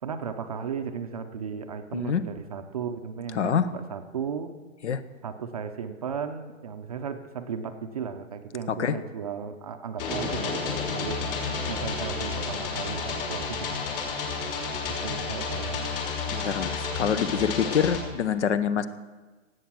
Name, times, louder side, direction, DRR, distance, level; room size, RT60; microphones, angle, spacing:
voice 1, 0.0-4.5 5.2-11.2 11.7-13.8 14.9-15.8, right 6 dB, 30° right, 7 dB, 0.6 m, -35 dB
voice 2, 1.9-2.2 3.3-3.7 4.8-5.0 8.7-8.9 16.3-18.9, left 7 dB, 60° left, 14 dB, 0.9 m, -26 dB
sound 1, 10.0-18.0, left 4 dB, 40° left, 3.2 m, -31 dB
17.5 x 8.0 x 6.0 m, 1.3 s
hypercardioid pair, 160°, 39 cm